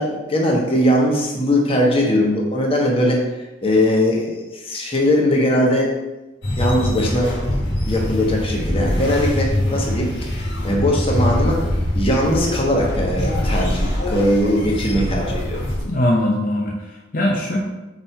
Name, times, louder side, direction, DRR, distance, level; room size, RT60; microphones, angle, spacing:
voice 1, 0.0-3.2 3.6-5.9 6.6-7.6 7.9-15.6, left 1 dB, 30° left, -1 dB, 1.1 m, -20 dB
sound 1, 6.4-15.8, left 1 dB, 60° left, 1.7 m, -23 dB
voice 2, 15.8-17.6, left 1 dB, 45° left, -2 dB, 0.7 m, -21 dB
5.3 x 4.3 x 4.5 m, 1.1 s
head